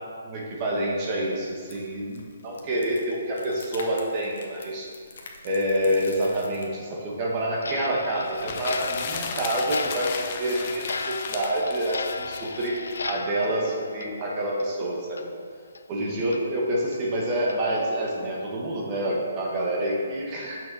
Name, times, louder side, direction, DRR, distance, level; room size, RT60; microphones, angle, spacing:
voice 1, 0.2-4.9 5.4-12.8 13.0-15.3 15.9-20.6, right 1 dB, 30° right, -3 dB, 1.4 m, -27 dB
sound 1, 1.0-6.7, left 3 dB, 65° left, 1.2 m, -47 dB
Clock, 7.6-14.8 15.1-15.3 15.7-15.8 16.3-16.4 16.9-17.0 17.5-17.6 18.1-18.3, left 4 dB, 85° left, 0.5 m, -36 dB
sound 2, 8.3-13.0, left 6 dB, 35° left, 0.6 m, -35 dB
6.5 x 6.2 x 5.5 m, 2.1 s
hypercardioid pair, 160°, 0 cm